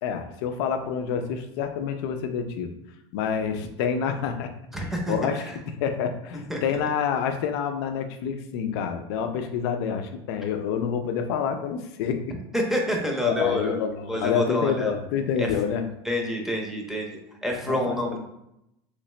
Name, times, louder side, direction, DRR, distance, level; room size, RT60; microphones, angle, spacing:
voice 1, 0.0-2.7 3.1-4.5 5.1-5.5 5.8-12.4 13.2-15.8 17.7-18.2, left 7 dB, 75° left, 7 dB, 0.5 m, -27 dB
voice 2, 4.7-5.6 6.3-6.6 12.5-13.8 14.1-14.9 15.4-15.5 16.0-18.2, equal, 5° right, 0 dB, 0.7 m, -28 dB
3.2 x 2.8 x 3.2 m, 0.84 s
supercardioid pair, 120°, 13 cm